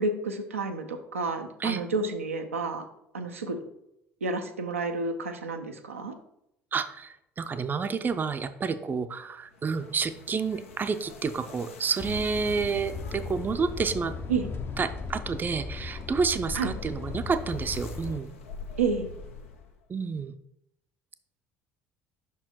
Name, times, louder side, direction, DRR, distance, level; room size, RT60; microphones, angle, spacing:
voice 1, 0.0-2.9 3.1-3.6 4.2-6.1 14.3-14.5 16.5-16.7 18.8-19.1, right 4 dB, 85° right, 5 dB, 0.5 m, -30 dB
voice 2, 6.7-14.1 14.8-18.3 19.9-20.3, right 5 dB, 25° right, 10 dB, 0.5 m, -29 dB
sound 1, 9.4-19.8, left 4 dB, 80° left, 0.7 m, -47 dB
sound 2, 12.0-18.2, left 4 dB, 30° left, 0.6 m, -37 dB
5.6 x 4.6 x 4.3 m, 0.80 s
figure-of-eight pair, 60°, 7 cm